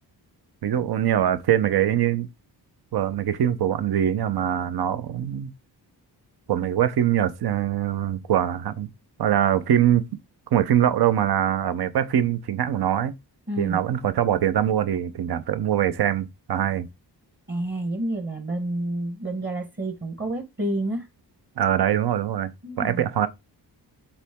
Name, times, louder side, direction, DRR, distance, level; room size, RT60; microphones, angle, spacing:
voice 1, 0.6-2.3 2.9-5.5 6.5-8.9 9.2-10.0 10.5-13.1 13.6-16.9 21.6-22.5 22.8-23.3, right 10 dB, 70° right, 0.8 m, -23 dB
voice 2, 13.5-13.8 17.5-21.1 22.6-23.1, right 1 dB, 30° right, 1.2 m, -29 dB
7.2 x 4.0 x 3.6 m
wide cardioid pair, 135°, 40 cm